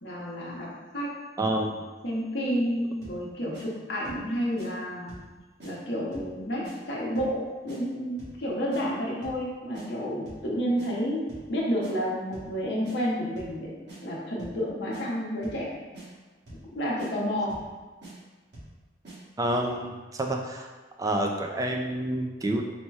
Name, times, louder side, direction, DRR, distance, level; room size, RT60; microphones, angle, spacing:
voice 1, 0.0-1.1 2.0-5.2 5.6-13.7 14.0-15.7 16.5-17.6, equal, 65° left, -5 dB, 0.8 m, -30 dB
voice 2, 1.4-1.8 19.4-20.7 21.0-22.6, right 1 dB, 20° right, 2 dB, 0.3 m, -28 dB
sound 1, 3.0-3.2 3.5-3.7 4.0-4.3 4.6-4.7 5.1-5.3 5.6-5.7 6.1-6.3 6.6-6.8 7.1-7.4 7.7-7.8 8.2-8.4 8.7-8.8 9.2-9.4 9.7-9.9 10.2-10.5 10.8-10.9 11.3-11.5 11.8-11.9 12.3-12.5 12.8-13.0 13.4-13.6 13.9-14.0 14.4-14.6 14.9-15.0 15.4-15.6 15.9-16.1 16.5-16.7 17.0-17.1 17.5-17.7 18.0-18.1 18.5-18.7 19.0-19.2, right 2 dB, 60° right, 1.5 m, -45 dB
4.2 x 2.2 x 4.6 m, 1.3 s
head